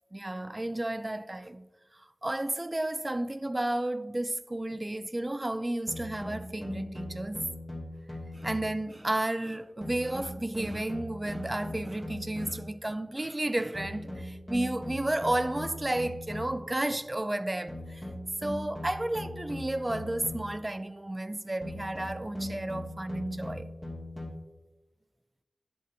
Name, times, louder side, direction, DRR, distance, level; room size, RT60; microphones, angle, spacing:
voice 1, 0.1-1.7 2.2-7.5 8.3-18.0 18.4-23.7, right 1 dB, 25° right, 0.5 m, -32 dB
sound 1, 5.9-8.9 9.8-12.8 13.7-16.8 17.7-20.7 21.6-24.3, left 1 dB, 10° left, 2.7 m, -40 dB
11.0 x 7.4 x 2.9 m
cardioid pair, 45°, 0 cm